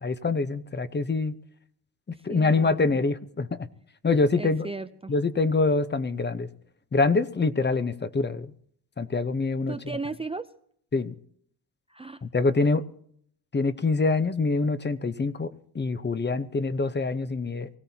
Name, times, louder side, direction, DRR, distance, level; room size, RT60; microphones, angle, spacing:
voice 1, 0.0-1.3 2.1-3.7 4.0-4.7 5.1-6.5 6.9-8.5 9.0-9.8 10.9-11.1 12.2-12.9 13.5-17.7, left 3 dB, 25° left, 0.9 m, -25 dB
voice 2, 2.1-3.0 4.4-5.1 9.7-10.5 11.9-12.2, right 3 dB, 15° right, 0.6 m, -36 dB
24.0 x 16.5 x 2.9 m
cardioid pair, 95°, 41 cm